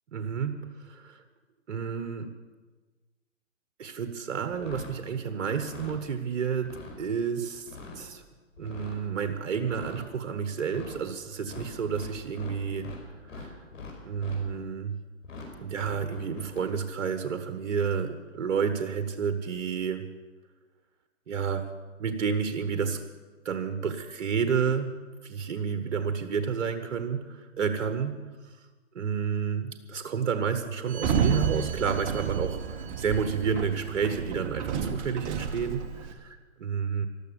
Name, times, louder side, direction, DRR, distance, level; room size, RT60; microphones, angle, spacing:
voice 1, 0.1-0.6 0.8-1.2 1.7-2.3 3.8-7.7 7.9-8.2 8.6-12.9 13.3-13.6 14.0-15.0 15.6-20.1 21.3-21.7 22.0-23.0 23.4-24.9 25.2-28.2 28.9-37.1, right 6 dB, 60° right, 8 dB, 1.4 m, -30 dB
sound 1, 4.5-5.0 5.5-6.0 6.5-7.0 7.5-8.0 8.5-9.0 9.6-10.0 10.6-11.0 11.5-13.0 13.2-14.4 15.2-15.5 15.8-16.6, left 3 dB, 70° left, 4.9 m, -43 dB
Sliding door, 30.9-36.1, right 7 dB, 25° right, 1.2 m, -31 dB
14.0 x 12.5 x 6.9 m, 1.3 s
hypercardioid pair, 140°, 39 cm